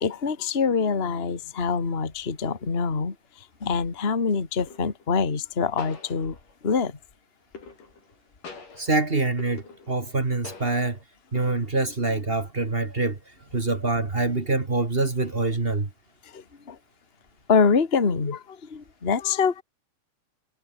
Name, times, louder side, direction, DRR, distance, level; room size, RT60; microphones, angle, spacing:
voice 1, 0.0-3.1 3.6-6.4 6.6-7.0 16.3-16.8 17.5-19.6, left 5 dB, 20° left, 1.6 m, -25 dB
sound 1, 3.0-3.3 4.6-5.1 5.8-6.7 7.5-8.1 8.4-10.1 10.4-11.0 11.4-11.9, left 4 dB, 55° left, 8.0 m, -44 dB
voice 2, 8.8-11.0 11.3-13.2 13.5-15.9, right 3 dB, 35° right, 0.9 m, -25 dB
omnidirectional pair, 4.7 m